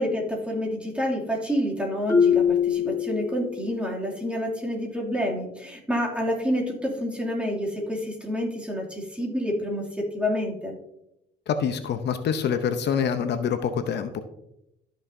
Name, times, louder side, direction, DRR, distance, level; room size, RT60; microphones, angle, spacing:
voice 1, 0.0-10.8, equal, 5° right, -2 dB, 2.6 m, -28 dB
Marimba xylophone, 2.1-3.8, left 7 dB, 15° left, 1.2 m, -23 dB
voice 2, 11.5-14.2, left 7 dB, 65° left, 9 dB, 0.7 m, -26 dB
13.0 x 6.4 x 2.7 m, 0.82 s
cardioid pair, 100°, 19 cm